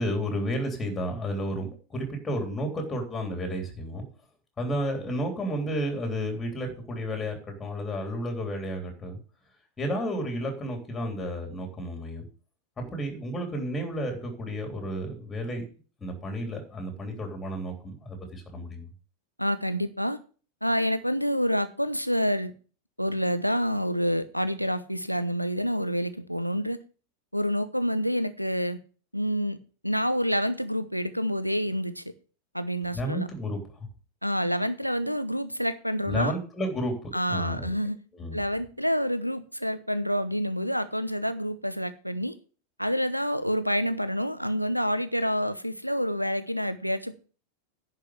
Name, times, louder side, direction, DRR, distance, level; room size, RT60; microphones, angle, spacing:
voice 1, 0.0-4.0 4.6-9.2 9.8-12.2 12.8-15.6 16.0-18.9 32.9-33.6 36.0-37.7 38.1-38.4, equal, 15° left, 3.3 m, -32 dB
voice 2, 19.4-20.2 20.6-22.5 23.0-26.8 27.3-28.8 29.1-29.6 29.8-32.0 32.5-33.3 34.2-36.3 37.1-38.0 38.3-42.4 42.8-47.2, equal, 90° left, 0.9 m, -28 dB
10.5 x 5.2 x 7.6 m
figure-of-eight pair, 90°, 0 cm